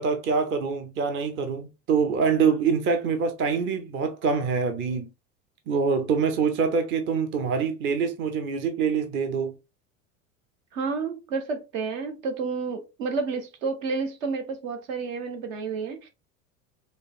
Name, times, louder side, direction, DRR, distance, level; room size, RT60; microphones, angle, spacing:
voice 1, 0.0-5.1 5.7-9.6, right 5 dB, 25° right, 0.6 m, -25 dB
voice 2, 10.7-16.1, right 4 dB, 60° right, 1.0 m, -30 dB
5.1 x 2.0 x 2.3 m
hypercardioid pair, 80°, 45 cm